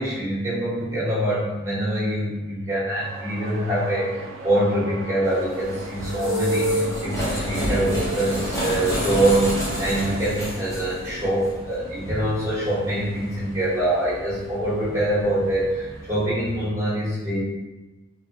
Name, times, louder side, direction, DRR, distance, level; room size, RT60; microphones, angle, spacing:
voice 1, 0.0-17.4, right 1 dB, 15° right, -10 dB, 1.2 m, -24 dB
sound 1, 3.0-10.2, right 3 dB, 70° right, 0.4 m, -38 dB
sound 2, 5.2-16.7, equal, 15° left, 0.8 m, -30 dB
2.7 x 2.5 x 2.4 m, 1.1 s
head